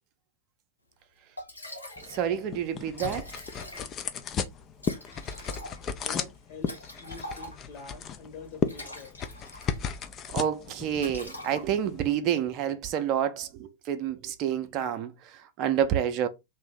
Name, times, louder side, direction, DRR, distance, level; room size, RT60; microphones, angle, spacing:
Liquid, 1.0-1.1 1.4-2.3 2.6-2.7 2.9-4.1 4.8-7.8 8.5-10.0 10.3-10.6 10.9-12.0, left 1 dB, 85° left, 0.8 m, -43 dB
sound 1, 2.0-12.1, left 7 dB, 30° left, 0.4 m, -35 dB
voice 1, 2.1-3.3 10.3-16.3, right 9 dB, 40° right, 0.5 m, -29 dB
voice 2, 6.0-9.2, left 5 dB, 50° left, 1.5 m, -46 dB
2.7 x 2.6 x 3.5 m
figure-of-eight pair, 90°, 0 cm